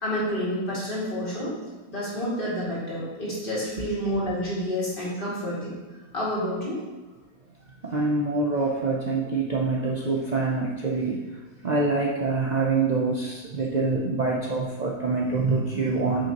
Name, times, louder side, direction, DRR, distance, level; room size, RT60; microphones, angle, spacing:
voice 1, 0.0-1.5 1.9-5.8 6.1-6.8, equal, 35° left, -7 dB, 2.3 m, -29 dB
voice 2, 7.8-11.2 11.6-16.3, right 3 dB, 65° right, -2 dB, 0.4 m, -25 dB
8.6 x 5.4 x 2.9 m, 1.2 s
omnidirectional pair, 1.7 m